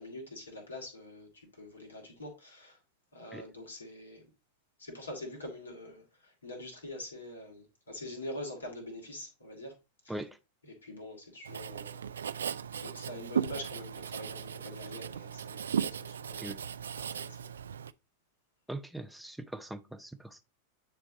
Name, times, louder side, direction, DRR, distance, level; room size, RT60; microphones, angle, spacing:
voice 1, 0.0-2.8 3.1-4.3 4.8-9.8 10.0-10.2 10.6-12.0 12.7-16.5 17.0-17.4, left 1 dB, 75° left, 2.6 m, -44 dB
Writing, 11.4-17.9, right 7 dB, 65° right, 0.3 m, -37 dB
voice 2, 18.7-20.4, right 1 dB, ahead, 0.5 m, -41 dB
9.8 x 3.5 x 4.0 m
figure-of-eight pair, 90°, 0 cm